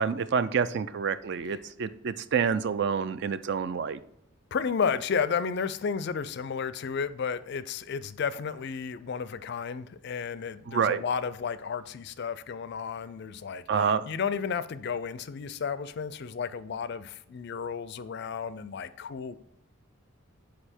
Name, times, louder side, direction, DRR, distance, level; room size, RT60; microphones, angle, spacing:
voice 1, 0.0-4.0 10.7-11.0 13.7-14.0, right 6 dB, 50° right, 0.3 m, -27 dB
voice 2, 4.5-19.4, left 6 dB, 50° left, 0.3 m, -32 dB
6.8 x 4.6 x 4.3 m
head